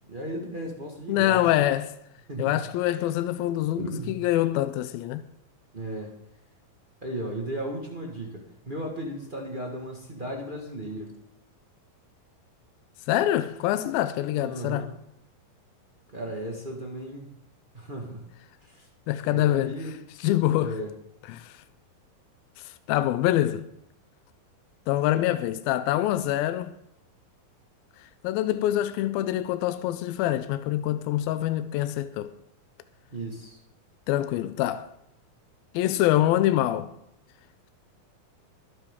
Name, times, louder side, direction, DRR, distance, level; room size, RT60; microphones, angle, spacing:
voice 1, 0.1-1.7 2.3-2.6 3.8-4.2 5.7-6.1 7.0-11.1 14.3-14.9 16.1-17.3 17.7-18.3 18.6-18.9 19.3-19.9 20.6-20.9 33.1-33.6, right 1 dB, 45° right, 0.6 m, -35 dB
voice 2, 1.1-1.9 2.4-5.2 13.1-14.9 19.1-19.7 20.2-20.7 21.3-21.6 22.6-23.7 24.9-26.7 28.2-32.3 34.1-34.9 35.7-36.9, left 13 dB, 85° left, 2.4 m, -25 dB
22.0 x 9.7 x 3.7 m
omnidirectional pair, 4.3 m